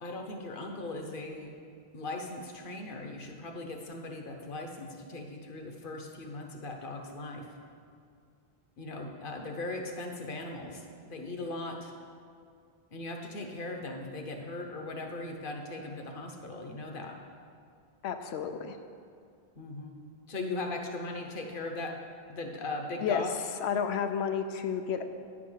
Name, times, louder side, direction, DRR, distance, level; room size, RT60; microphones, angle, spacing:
voice 1, 0.0-1.5 1.9-7.5 8.8-11.9 12.9-17.2 19.5-20.0 20.3-21.9 22.3-23.3, left 2 dB, 55° left, 3 dB, 1.0 m, -39 dB
voice 2, 18.0-18.8 23.0-23.2 23.6-25.0, left 7 dB, 90° left, 8 dB, 0.9 m, -31 dB
9.2 x 5.0 x 5.6 m, 2.3 s
omnidirectional pair, 1.1 m